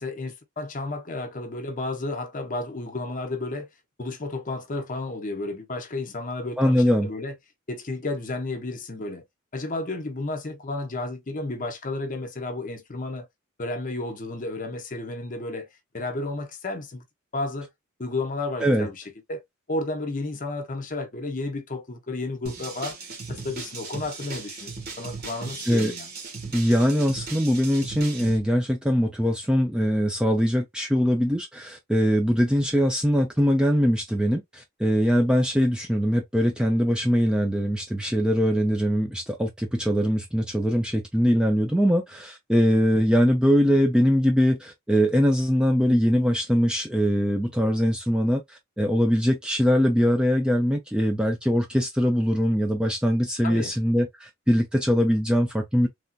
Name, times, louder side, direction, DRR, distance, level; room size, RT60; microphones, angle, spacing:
voice 1, 0.0-3.7 4.0-7.3 7.7-9.2 9.5-13.3 13.6-15.7 15.9-17.0 17.3-17.7 18.0-19.4 19.7-23.0 23.3-26.1 53.4-53.7, left 2 dB, 35° left, 0.7 m, -32 dB
voice 2, 6.6-7.1 18.6-18.9 25.7-25.9 26.5-55.9, equal, 5° right, 0.3 m, -22 dB
sound 1, 22.5-28.4, right 4 dB, 45° right, 1.2 m, -37 dB
3.2 x 2.6 x 2.2 m
head